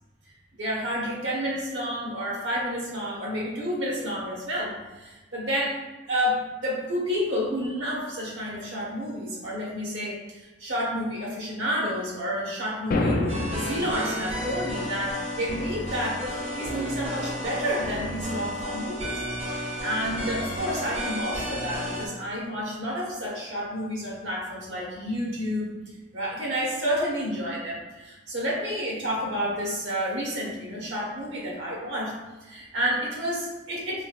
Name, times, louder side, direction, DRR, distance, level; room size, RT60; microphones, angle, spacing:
voice 1, 0.6-5.8 6.1-13.2 13.5-16.2 16.5-25.7 26.1-32.1 32.4-34.1, equal, 75° right, -4 dB, 1.1 m, -30 dB
sound 1, 12.9-13.9, left 2 dB, 45° left, 0.3 m, -25 dB
sound 2, 13.3-22.1, equal, 30° right, 0.6 m, -32 dB
3.8 x 2.8 x 2.3 m, 1.2 s
head